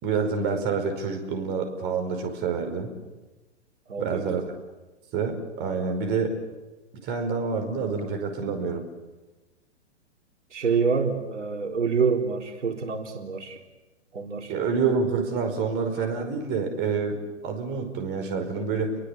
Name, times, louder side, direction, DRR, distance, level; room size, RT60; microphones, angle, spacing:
voice 1, 0.0-2.9 4.0-4.4 5.1-6.4 7.0-8.8 14.5-19.0, right 5 dB, 30° right, 5 dB, 5.2 m, -27 dB
voice 2, 3.9-4.4 10.5-13.6 14.1-14.5, right 5 dB, 75° right, 3 dB, 3.8 m, -27 dB
30.0 x 23.0 x 8.5 m, 1.1 s
hypercardioid pair, 130°, 36 cm